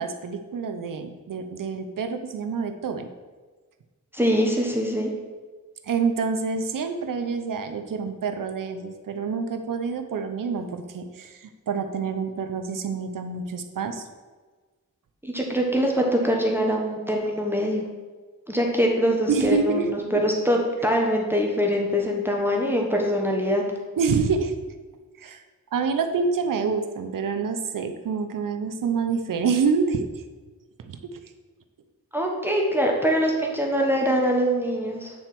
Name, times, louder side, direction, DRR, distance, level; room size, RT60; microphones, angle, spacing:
voice 1, 0.0-3.1 5.9-14.0 19.3-19.9 24.0-24.5 25.2-25.4 25.7-30.1 30.8-31.2, right 5 dB, 75° right, 7 dB, 0.9 m, -27 dB
voice 2, 4.1-5.1 15.2-17.8 18.5-23.6 32.1-35.1, equal, 5° right, 0 dB, 1.1 m, -23 dB
8.8 x 4.4 x 6.0 m, 1.4 s
wide cardioid pair, 105°, 33 cm